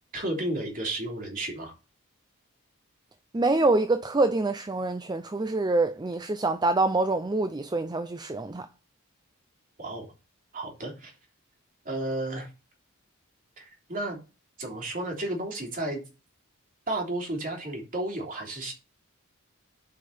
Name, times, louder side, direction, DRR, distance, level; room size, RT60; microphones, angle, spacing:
voice 1, 0.1-1.7 9.8-10.1 10.5-11.1 11.8-12.5 13.6-14.2 14.6-16.0 16.9-18.7, right 1 dB, 40° right, 3.3 m, -32 dB
voice 2, 3.3-8.7, right 2 dB, 20° right, 0.5 m, -25 dB
9.4 x 5.2 x 4.3 m
head